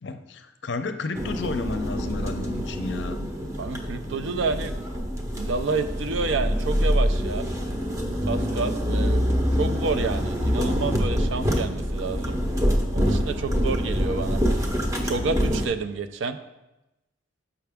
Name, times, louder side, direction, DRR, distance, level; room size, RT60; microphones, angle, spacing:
voice 1, 0.0-3.2, left 3 dB, 60° left, 8 dB, 0.5 m, -32 dB
sound 1, 1.1-15.7, equal, 15° right, 0.7 m, -25 dB
voice 2, 3.6-4.7 5.3-7.5 8.3-9.2 9.5-12.4 12.9-14.4 15.0-16.4, right 4 dB, 70° right, 9 dB, 0.5 m, -29 dB
7.0 x 5.7 x 3.5 m, 0.96 s
head